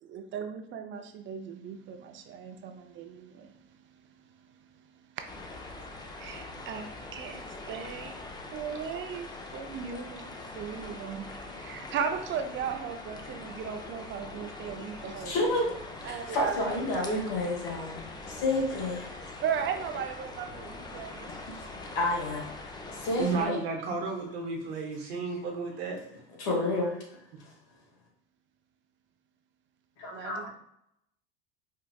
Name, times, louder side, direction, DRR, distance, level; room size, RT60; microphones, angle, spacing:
voice 1, 0.1-3.5 5.2-5.3 6.2-8.2 8.5-15.3 16.0-16.6 19.4-21.3 30.1-30.5, right 7 dB, 40° right, 6 dB, 0.5 m, -37 dB
sound 1, 5.3-23.5, left 2 dB, 15° left, 0.4 m, -43 dB
voice 2, 15.2-15.7 16.0-18.0 18.3-19.1 21.3-21.6 21.9-23.6 26.4-27.2 30.0-30.5, left 2 dB, 70° left, -1 dB, 1.4 m, -30 dB
voice 3, 23.2-26.0, right 4 dB, 85° right, 1 dB, 0.8 m, -32 dB
4.4 x 2.4 x 2.3 m, 0.75 s
supercardioid pair, 95°, 30 cm